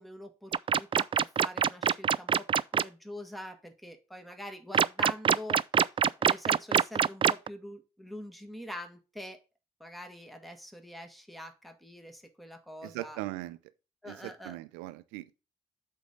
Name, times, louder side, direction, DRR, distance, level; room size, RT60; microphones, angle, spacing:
voice 1, 0.0-2.5 2.7-5.6 6.2-9.4 9.8-13.2 14.0-14.5, left 1 dB, ahead, 1.8 m, -44 dB
sound 1, 0.5-2.8 4.7-7.5, right 7 dB, 35° right, 0.4 m, -24 dB
voice 2, 12.8-13.6 14.0-15.4, right 17 dB, 85° right, 0.6 m, -40 dB
7.9 x 3.8 x 5.2 m
hypercardioid pair, 50°, 16 cm